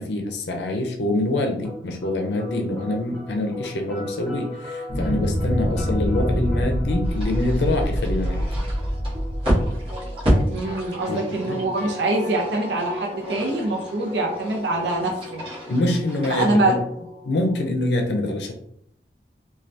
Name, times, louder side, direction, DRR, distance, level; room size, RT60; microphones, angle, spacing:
voice 1, 0.0-8.4 11.1-11.6 15.7-16.8 17.2-18.5, left 1 dB, 80° left, 4 dB, 0.5 m, -25 dB
sound 1, 1.6-17.6, left 2 dB, 10° left, 0.9 m, -38 dB
sound 2, 4.9-10.6, equal, 45° left, 0.7 m, -26 dB
sound 3, 7.0-16.6, equal, 30° right, 1.2 m, -30 dB
voice 2, 10.5-15.4 16.3-16.8, right 2 dB, 90° right, -1 dB, 0.6 m, -24 dB
3.2 x 2.3 x 2.6 m, 0.71 s
head